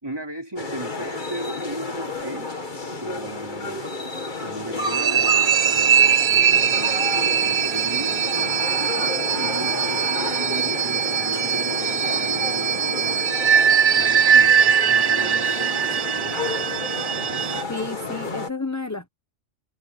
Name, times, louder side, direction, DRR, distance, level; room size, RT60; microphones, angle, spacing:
voice 1, 0.0-2.6 3.0-3.8 4.4-8.2 8.8-13.2 13.9-15.6 16.2-16.4, right 1 dB, 20° right, 3.8 m, -36 dB
sound 1, 0.6-18.5, left 3 dB, 40° left, 2.2 m, -31 dB
sound 2, 4.8-17.6, right 8 dB, 60° right, 0.4 m, -21 dB
voice 2, 17.7-19.1, left 3 dB, 15° left, 0.9 m, -31 dB
omnidirectional pair, 1.2 m